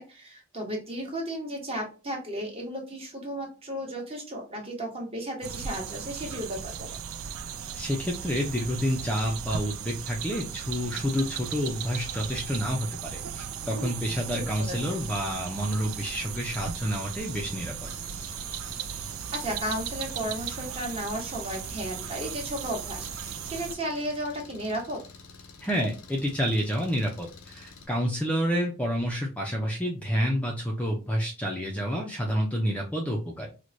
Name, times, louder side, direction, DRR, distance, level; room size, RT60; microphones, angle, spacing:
voice 1, 0.0-7.0 14.3-14.7 19.3-25.0, equal, 30° right, 0 dB, 1.1 m, -34 dB
sound 1, 5.4-23.8, right 8 dB, 75° right, 0.4 m, -37 dB
voice 2, 7.7-17.9 25.6-33.5, equal, 5° left, -1 dB, 0.5 m, -29 dB
Engine, 17.8-27.9, left 4 dB, 85° left, 0.6 m, -49 dB
4.5 x 2.1 x 2.5 m, 0.32 s
head